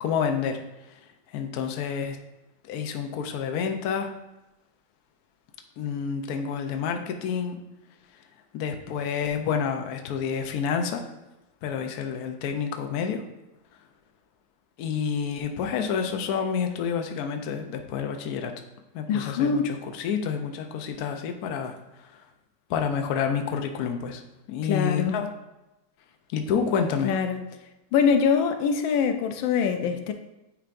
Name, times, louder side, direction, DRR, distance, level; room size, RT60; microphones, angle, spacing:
voice 1, 0.0-0.6 1.3-2.2 2.7-4.1 5.8-7.6 8.5-11.0 11.6-13.2 14.8-18.5 18.9-21.8 22.7-24.2 24.5-25.3 26.3-27.1, left 7 dB, 65° left, 5 dB, 1.0 m, -28 dB
voice 2, 19.1-19.7 24.6-25.2 27.0-27.4 27.9-30.1, left 6 dB, 80° left, 7 dB, 1.3 m, -24 dB
9.0 x 4.6 x 2.6 m, 0.98 s
omnidirectional pair, 2.1 m